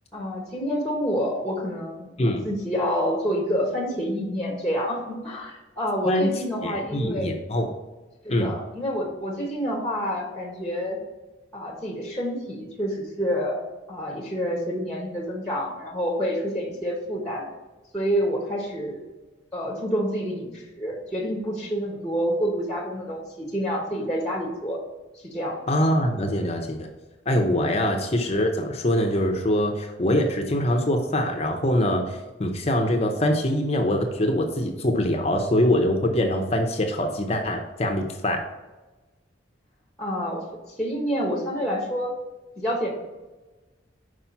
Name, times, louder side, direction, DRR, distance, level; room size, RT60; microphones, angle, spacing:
voice 1, 0.1-7.3 8.2-11.0 11.5-13.6 13.9-17.4 17.9-19.0 19.5-24.8 25.2-25.6 27.6-27.9 40.0-40.5 40.8-42.1 42.6-42.9, equal, 5° left, -1 dB, 1.2 m, -28 dB
voice 2, 6.0-7.7 8.3-8.5 25.7-26.9 27.3-38.4, left 1 dB, 35° left, 3 dB, 0.7 m, -24 dB
5.8 x 4.8 x 5.7 m, 1.2 s
head